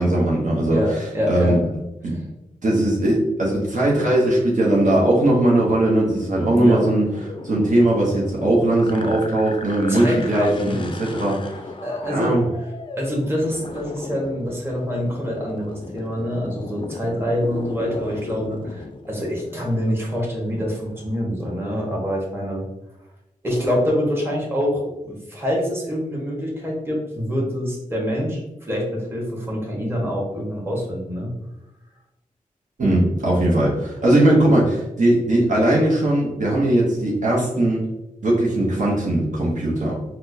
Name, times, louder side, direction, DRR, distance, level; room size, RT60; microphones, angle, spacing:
voice 1, 0.0-1.6 2.0-2.2 2.6-7.0 7.4-11.6 12.1-12.4 32.8-37.9 38.2-40.0, right 1 dB, 60° right, -4 dB, 0.8 m, -19 dB
voice 2, 0.7-1.6 2.1-2.2 6.5-6.8 9.9-10.8 11.8-12.4 13.0-22.6 23.4-31.3, equal, 15° right, -3 dB, 1.2 m, -25 dB
sound 1, 6.9-21.2, left 3 dB, 35° left, 0.4 m, -37 dB
4.2 x 2.1 x 2.6 m, 0.96 s
cardioid pair, 50°, 15 cm